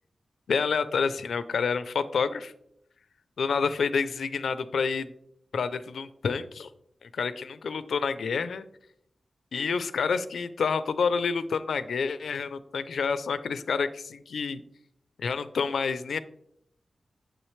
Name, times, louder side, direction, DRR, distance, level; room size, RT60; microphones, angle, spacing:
voice 1, 0.5-2.5 3.4-5.1 5.5-6.7 7.0-8.7 9.5-14.6 15.2-16.2, left 5 dB, 85° left, 13 dB, 0.5 m, -28 dB
8.9 x 6.9 x 3.2 m, 0.73 s
cardioid pair, 45°, 0 cm